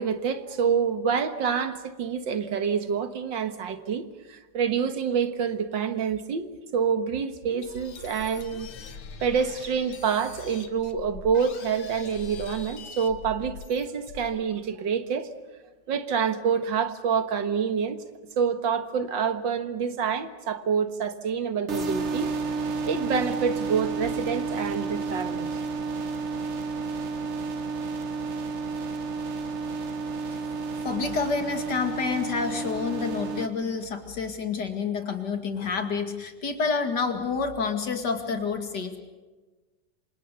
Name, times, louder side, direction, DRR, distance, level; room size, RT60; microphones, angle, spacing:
voice 1, 0.0-8.7 9.2-15.3 15.9-18.1 18.4-22.3 22.9-25.5, right 6 dB, 75° right, 9 dB, 2.1 m, -27 dB
sound 1, 7.6-14.4, left 5 dB, 80° left, 2.2 m, -43 dB
sound 2, 21.7-33.5, right 4 dB, 40° right, 1.2 m, -31 dB
voice 2, 30.8-39.0, left 5 dB, 60° left, 6 dB, 2.8 m, -28 dB
28.0 x 26.0 x 6.9 m, 1.2 s
omnidirectional pair, 2.1 m